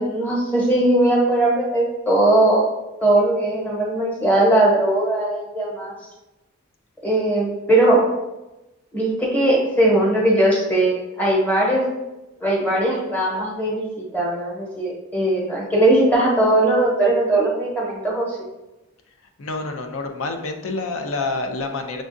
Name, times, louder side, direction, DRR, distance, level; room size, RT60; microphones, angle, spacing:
voice 1, 0.0-2.7 3.0-5.9 7.0-8.0 8.9-11.9 12.4-18.3, right 1 dB, 10° left, -4 dB, 1.0 m, -19 dB
voice 2, 19.4-22.0, left 3 dB, 70° left, 4 dB, 0.5 m, -27 dB
6.2 x 2.3 x 2.6 m, 1.0 s
head